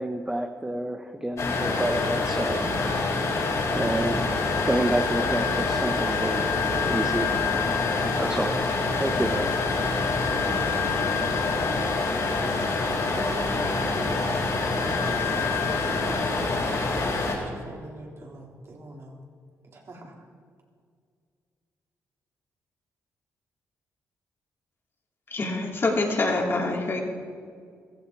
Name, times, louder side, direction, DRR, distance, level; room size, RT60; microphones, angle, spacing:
voice 1, 0.0-2.7 3.7-6.5 6.8-7.5 8.2-8.6 9.0-9.5, right 1 dB, 10° right, 5 dB, 1.0 m, -29 dB
sound 1, 1.4-17.4, left 3 dB, 55° left, 4.7 m, -26 dB
voice 2, 12.8-14.2 14.7-15.6 15.8-17.0 17.4-19.2 19.7-20.1, right 2 dB, 50° right, -1 dB, 3.5 m, -42 dB
voice 3, 25.3-27.0, left 2 dB, 40° left, 0 dB, 3.0 m, -25 dB
15.5 x 14.5 x 4.7 m, 2.1 s
cardioid pair, 85°, 6 cm